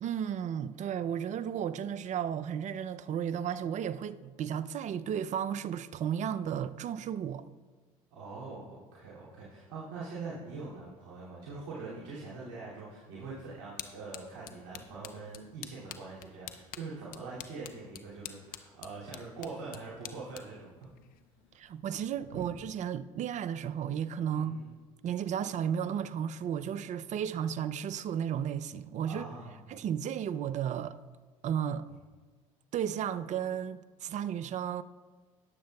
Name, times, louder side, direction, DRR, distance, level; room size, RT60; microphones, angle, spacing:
voice 1, 0.0-7.5 21.5-24.7 25.0-29.3 29.7-31.0 31.4-31.9 32.7-34.8, right 9 dB, 45° right, 0.5 m, -34 dB
voice 2, 8.1-20.9 21.5-21.6 22.3-22.5 24.3-24.7 29.1-29.6, right 4 dB, 70° right, 2.7 m, -43 dB
sound 1, 13.1-21.8, left 11 dB, 55° left, 0.8 m, -49 dB
19.5 x 7.4 x 2.3 m
hypercardioid pair, 75°, 18 cm